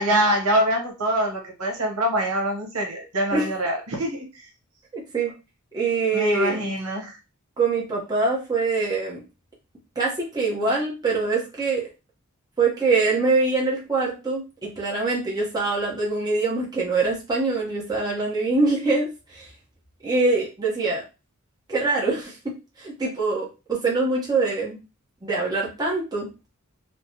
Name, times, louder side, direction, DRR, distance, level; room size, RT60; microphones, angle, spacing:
voice 1, 0.0-4.5 6.1-7.2, right 1 dB, 80° right, 1 dB, 1.0 m, -24 dB
voice 2, 4.9-5.3 5.7-6.7 7.6-9.2 10.0-11.9 12.6-19.5 20.0-21.0 21.7-24.8 25.2-26.3, right 3 dB, 20° right, -4 dB, 0.9 m, -24 dB
3.2 x 2.1 x 2.7 m, 0.29 s
head